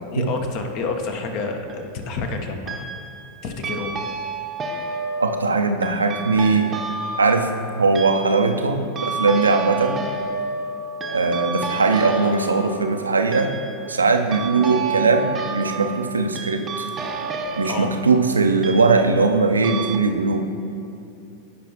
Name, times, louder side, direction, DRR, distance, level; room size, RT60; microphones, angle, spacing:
voice 1, 0.1-3.0 3.4-3.9 14.2-14.4 17.6-17.9, left 4 dB, 40° left, 5 dB, 0.9 m, -29 dB
sound 1, 1.4-1.9 2.7-3.3 3.6-19.4 19.6-20.0, right 3 dB, 25° right, 0.7 m, -31 dB
voice 2, 5.2-6.7 7.2-7.5 7.8-10.0 11.1-13.6 13.9-16.9 17.6-20.5, right 4 dB, 75° right, 5 dB, 0.6 m, -20 dB
15.5 x 5.6 x 2.9 m, 2.6 s
figure-of-eight pair, 90°, 0 cm